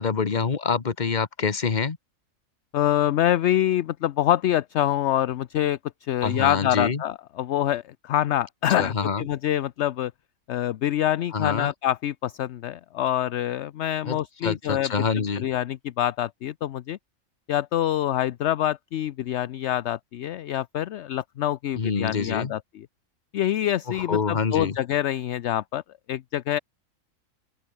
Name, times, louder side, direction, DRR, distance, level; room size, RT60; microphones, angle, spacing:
voice 1, 0.0-2.0 6.2-7.0 8.8-9.3 11.3-11.7 14.0-15.5 21.8-22.5 23.9-24.8, left 5 dB, 35° left, 1.4 m, -26 dB
voice 2, 2.7-10.1 10.5-15.1 15.4-17.0 17.5-22.9 23.3-25.8 26.1-26.6, left 12 dB, 65° left, 0.8 m, -26 dB
open air
omnidirectional pair, 1.4 m